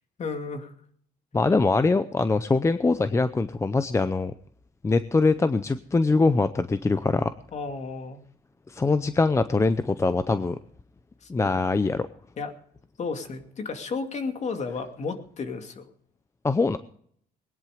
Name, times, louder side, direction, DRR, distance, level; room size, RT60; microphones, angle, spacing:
voice 1, 0.2-0.7 7.5-8.2 11.2-11.3 12.4-12.5 13.0-15.9, left 4 dB, 45° left, 6 dB, 2.4 m, -33 dB
voice 2, 1.3-4.3 4.8-7.3 8.7-10.6 11.3-12.1 16.4-16.8, left 3 dB, 15° left, 12 dB, 0.6 m, -23 dB
20.0 x 10.5 x 5.0 m, 0.63 s
cardioid pair, 110°, 17 cm